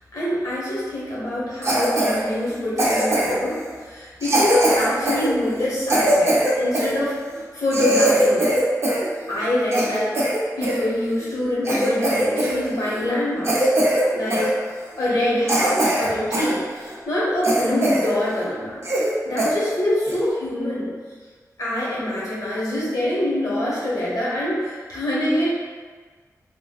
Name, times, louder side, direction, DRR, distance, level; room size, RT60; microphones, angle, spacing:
voice 1, 0.1-7.2 7.5-8.6 9.3-10.1 10.6-13.7 14.1-14.6 15.0-18.8 19.2-21.0 21.6-25.5, left 1 dB, 70° left, -7 dB, 1.1 m, -25 dB
Cough, 1.6-2.2 2.8-3.5 4.2-6.9 7.4-7.5 7.7-9.1 9.4-10.8 11.3-11.4 11.6-12.6 12.8-13.0 13.4-14.0 14.3-14.5 15.0-15.1 15.5-16.5 16.9-17.0 17.4-18.1 18.4-18.5 18.8-19.1 19.4-19.5 20.1-20.3, right 1 dB, 45° right, 0.6 m, -21 dB
3.6 x 2.4 x 2.3 m, 1.5 s
wide cardioid pair, 125°, 6 cm